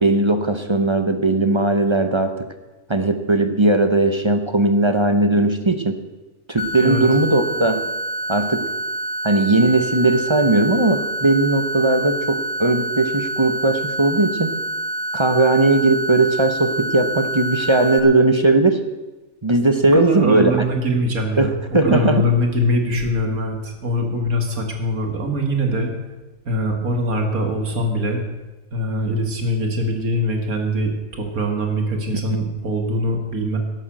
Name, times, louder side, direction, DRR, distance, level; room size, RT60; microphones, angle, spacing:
voice 1, 0.0-2.4 2.9-6.0 6.5-7.8 8.3-8.7 9.2-14.6 15.1-18.8 19.4-20.5 21.4-22.2, right 2 dB, 25° right, 8 dB, 0.8 m, -18 dB
sound 1, 6.6-18.0, right 1 dB, 60° left, 1.9 m, -27 dB
voice 2, 19.9-21.6 21.8-26.0 26.5-28.2 28.7-33.6, equal, 90° right, 3 dB, 2.6 m, -22 dB
12.0 x 11.5 x 7.7 m, 1.1 s
omnidirectional pair, 1.5 m